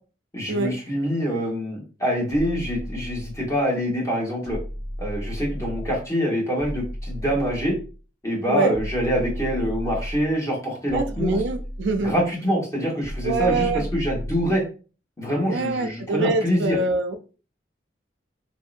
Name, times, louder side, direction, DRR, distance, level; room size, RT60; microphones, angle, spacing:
voice 1, 0.3-4.6 5.0-7.8 8.2-11.4 12.0-14.6 15.2-16.8, equal, 20° left, 1.2 m, -25 dB
sound 1, 2.3-3.6 4.4-6.1 6.6-8.0 8.7-10.3 10.9-12.3 13.0-14.6, equal, 60° left, 1.2 m, -34 dB
voice 2, 8.5-8.8 10.9-12.1 13.2-13.9 15.5-17.2, right 3 dB, 75° right, 0.4 m, -25 dB
3.0 x 2.7 x 2.4 m
head